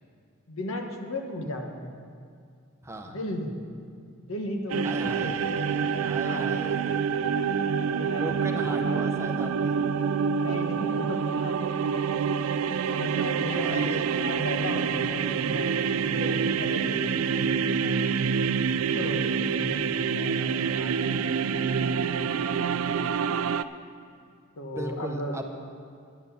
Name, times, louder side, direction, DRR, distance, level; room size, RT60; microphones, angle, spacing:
voice 1, 0.5-1.9 3.0-3.5 4.2-5.6 6.0-6.7 7.9-9.0 10.4-18.0 18.9-21.1 24.6-25.4, left 1 dB, 80° left, 2 dB, 1.3 m, -36 dB
voice 2, 2.8-3.1 4.8-7.5 7.8-9.8 13.6-14.1 24.8-25.4, right 1 dB, 15° right, 4 dB, 0.7 m, -38 dB
sound 1, 4.7-23.6, right 6 dB, 85° right, 0.4 m, -27 dB
sound 2, 12.6-21.9, right 2 dB, 45° right, 1.2 m, -44 dB
10.5 x 8.1 x 6.9 m, 2.3 s
head